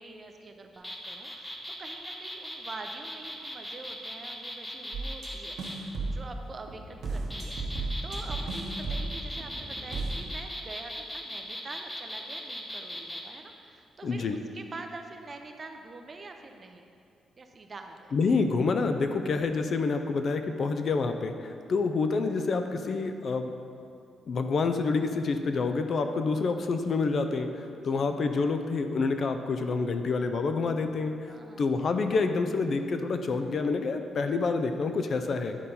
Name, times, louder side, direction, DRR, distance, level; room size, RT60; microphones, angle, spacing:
voice 1, 0.0-16.9 17.4-18.1 27.7-28.1 31.3-31.8, right 3 dB, 30° right, 5 dB, 0.5 m, -46 dB
sound 1, 0.7-5.8 7.0-13.2, equal, 10° left, 0.7 m, -39 dB
sound 2, 4.9-5.3 5.6-6.3 6.7-10.1, right 3 dB, 65° right, 1.1 m, -34 dB
voice 2, 14.0-14.4 18.1-23.5 24.3-35.6, left 4 dB, 40° left, 7 dB, 0.4 m, -28 dB
9.7 x 4.2 x 5.3 m, 2.5 s
wide cardioid pair, 170°, 0 cm